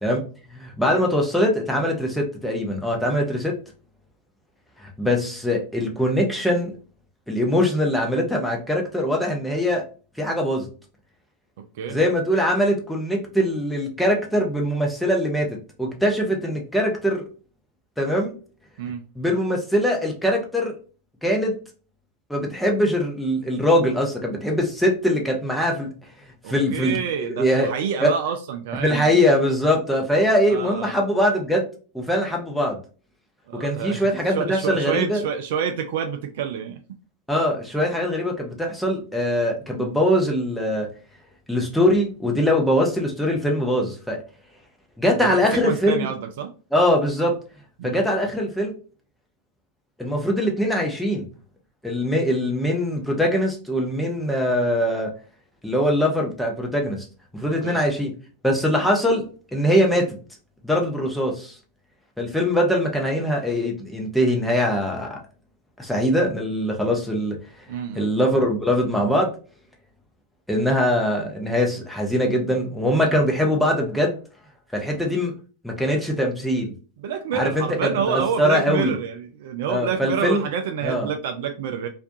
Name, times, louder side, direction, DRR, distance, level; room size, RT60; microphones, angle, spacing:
voice 1, 0.5-3.5 4.8-6.8 7.3-9.8 10.2-10.7 11.9-15.5 15.8-17.2 18.0-18.3 19.2-20.7 21.2-21.5 22.3-25.9 26.5-27.7 28.0-28.1 28.8-31.6 31.9-32.8 33.5-35.2 37.3-40.9 41.5-44.2 45.0-46.1 46.7-47.4 47.8-48.7 50.0-51.3 51.8-55.1 55.6-57.1 57.3-58.1 58.4-59.2 59.5-60.1 60.6-61.5 62.2-65.2 65.8-67.4 67.9-69.3 70.5-74.2 74.7-75.3 75.6-76.7 77.3-78.9 79.7-80.4 80.8-81.1, equal, ahead, 0.6 m, -22 dB
voice 2, 26.4-29.2 30.5-30.9 33.5-36.8 45.1-45.4 45.6-46.5 47.8-48.0 57.6-57.8 67.7-68.1 77.0-81.9, right 7 dB, 55° right, 0.3 m, -28 dB
2.4 x 2.2 x 2.5 m
figure-of-eight pair, 90°, 0 cm